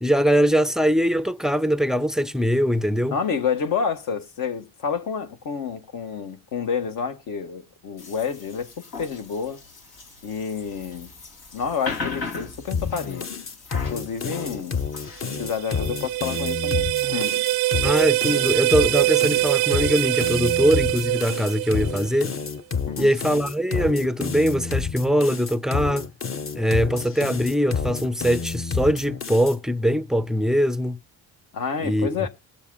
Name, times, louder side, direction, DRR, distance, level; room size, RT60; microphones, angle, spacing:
voice 1, 0.0-3.2 17.8-22.3 23.0-26.1 26.5-31.0 31.8-32.3, equal, ahead, 0.4 m, -22 dB
voice 2, 3.1-9.6 10.2-11.1 11.5-13.3 13.9-14.8 15.4-17.4 22.8-23.1 31.5-32.3, left 6 dB, 70° left, 1.7 m, -29 dB
sound 1, 8.0-16.7, left 4 dB, 85° left, 3.1 m, -38 dB
sound 2, 12.7-29.6, left 5 dB, 35° left, 1.0 m, -29 dB
sound 3, 15.2-22.3, right 19 dB, 75° right, 0.5 m, -24 dB
20.0 x 7.1 x 2.3 m
cardioid pair, 95°, 35 cm